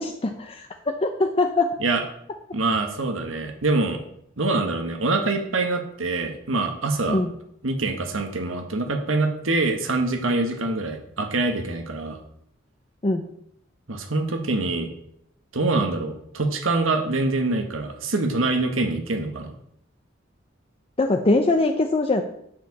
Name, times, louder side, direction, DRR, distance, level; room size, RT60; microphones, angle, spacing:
voice 1, 0.0-1.7 7.1-7.3 13.0-13.3 21.0-22.2, left 2 dB, 30° left, 5 dB, 0.6 m, -22 dB
voice 2, 2.5-4.0 4.4-7.2 7.6-12.2 13.9-14.9 15.5-19.5, right 2 dB, 85° right, 5 dB, 1.5 m, -25 dB
10.0 x 5.0 x 7.1 m, 0.73 s
head